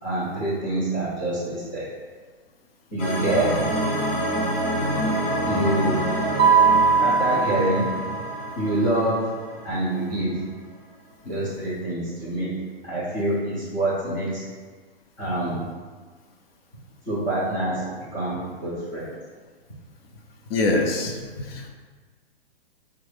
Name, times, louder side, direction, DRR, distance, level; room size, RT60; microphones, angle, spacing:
voice 1, 0.0-1.9 2.9-3.6 5.5-6.0 7.0-8.0 8.5-9.3 9.6-10.4 11.3-12.6 12.8-14.4 15.2-15.6 17.1-19.1, right 1 dB, 10° left, -12 dB, 0.3 m, -26 dB
sound 1, 3.0-10.1, equal, 45° left, 1.2 m, -27 dB
Mallet percussion, 6.4-8.5, right 5 dB, 80° right, 0.5 m, -20 dB
voice 2, 20.5-21.7, left 2 dB, 70° left, 2 dB, 0.6 m, -24 dB
3.2 x 2.3 x 3.2 m, 1.5 s
hypercardioid pair, 145°, 30 cm